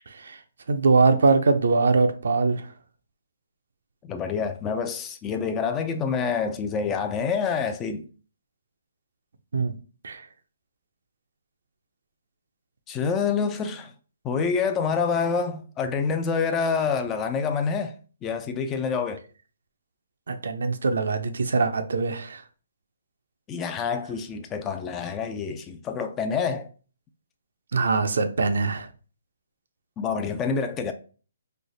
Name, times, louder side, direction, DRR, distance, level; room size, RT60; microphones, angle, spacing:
voice 1, 0.7-2.7 9.5-9.7 10.0-10.2 20.3-22.4 27.7-28.9, right 4 dB, 75° right, 0.5 m, -22 dB
voice 2, 4.0-8.1 12.9-13.9 14.2-18.0 18.2-19.2 23.5-26.7 30.0-30.9, left 5 dB, 20° left, 0.3 m, -27 dB
3.2 x 2.0 x 3.8 m
hypercardioid pair, 150°, 0 cm